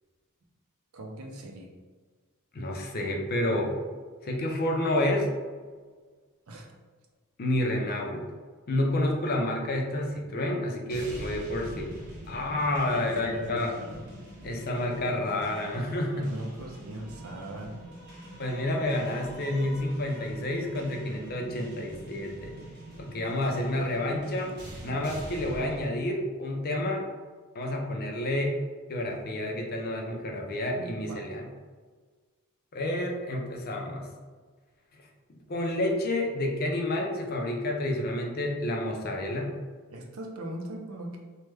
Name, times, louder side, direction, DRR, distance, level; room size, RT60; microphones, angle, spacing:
voice 1, 0.9-1.7 6.5-6.7 12.9-14.0 14.3-14.5 16.2-17.7 30.7-31.2 39.9-41.2, right 1 dB, 75° right, 2 dB, 0.5 m, -39 dB
voice 2, 2.5-3.8 4.2-5.3 7.4-8.3 8.7-11.9 12.3-13.7 14.4-16.3 18.4-22.5 23.0-24.5 24.8-27.0 27.5-28.6 28.9-31.5 32.7-34.1 35.5-39.5, left 1 dB, 45° left, 1 dB, 0.5 m, -29 dB
sound 1, 10.9-25.9, right 1 dB, 50° right, 1.1 m, -44 dB
3.1 x 2.1 x 3.3 m, 1.5 s
head